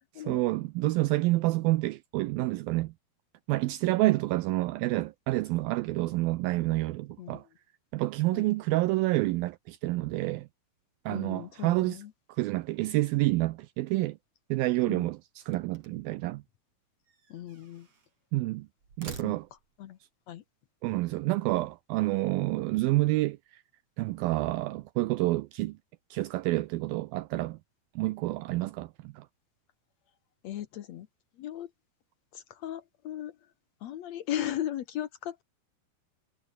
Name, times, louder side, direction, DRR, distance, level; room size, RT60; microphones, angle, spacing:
voice 1, 0.2-2.9 3.5-7.4 7.9-10.5 11.1-12.0 12.3-14.2 14.5-16.4 18.3-18.7 19.0-19.5 20.8-23.6 24.0-25.8 26.1-27.6 28.0-29.3, right 19 dB, 80° right, 2.3 m, -28 dB
voice 2, 11.1-12.1 14.9-15.1 17.3-17.9 19.1-19.4 19.8-20.0 20.3-20.4 30.4-31.1 31.4-31.7 32.3-33.4 33.8-35.4, left 12 dB, 75° left, 1.6 m, -37 dB
sound 1, 15.3-16.2 17.1-18.1 18.8-19.8, right 5 dB, 40° right, 5.0 m, -48 dB
omnidirectional pair, 4.5 m